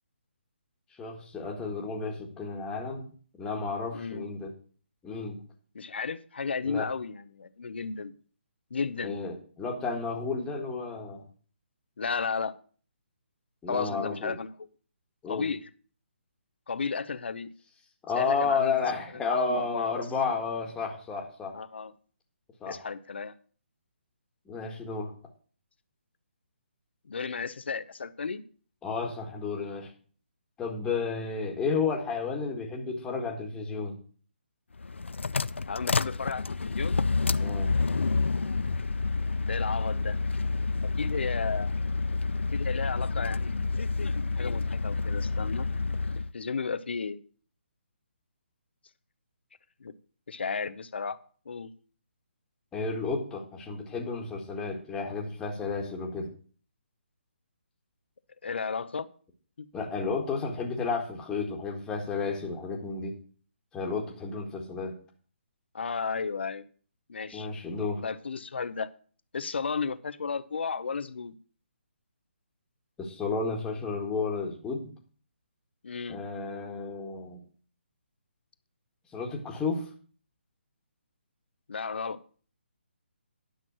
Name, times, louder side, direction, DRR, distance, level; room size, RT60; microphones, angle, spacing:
voice 1, 1.0-3.1 3.4-4.5 5.0-5.4 6.6-6.9 9.0-11.2 13.6-14.4 15.2-15.5 18.0-21.5 22.6-22.8 24.5-25.1 28.8-29.9 30.6-34.0 37.4-37.7 52.7-56.3 59.7-63.2 63.7-64.9 67.3-68.0 73.0-74.9 76.1-77.4 79.1-79.9, left 4 dB, 10° left, 1.7 m, -32 dB
voice 2, 3.9-4.2 5.7-8.1 8.7-9.2 12.0-12.6 13.7-14.7 15.3-15.7 16.7-17.5 18.2-18.8 19.1-20.0 21.5-21.9 22.7-23.3 27.0-28.5 35.7-37.1 39.4-40.2 40.8-41.8 42.5-43.8 44.3-45.7 46.3-47.2 49.8-49.9 50.3-51.2 51.5-51.7 58.4-59.1 59.6-59.7 65.7-66.7 67.1-67.5 68.0-68.9 69.3-71.4 75.8-76.2 81.7-82.2, left 5 dB, 65° left, 0.8 m, -34 dB
sound 1, 34.8-46.3, left 4 dB, 85° left, 0.4 m, -29 dB
10.0 x 5.9 x 6.1 m
figure-of-eight pair, 150°, 6 cm